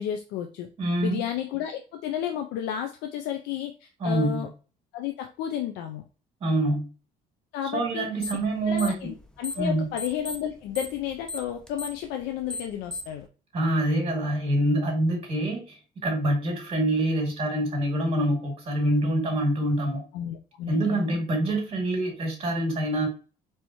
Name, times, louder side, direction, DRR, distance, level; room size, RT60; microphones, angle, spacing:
voice 1, 0.0-0.7 1.0-4.5 4.9-6.0 7.5-8.1 8.7-13.3 20.1-21.2, left 10 dB, 90° left, 6 dB, 0.5 m, -32 dB
voice 2, 0.8-1.2 4.0-4.4 6.4-6.9 7.7-9.1 9.6-9.9 13.5-20.0 20.7-23.1, right 1 dB, 35° right, 1 dB, 2.3 m, -26 dB
sound 1, 8.2-8.5 8.7-9.7 10.0-13.2, left 2 dB, 5° left, 0.7 m, -35 dB
4.3 x 3.4 x 2.9 m, 0.35 s
cardioid pair, 110°, 17 cm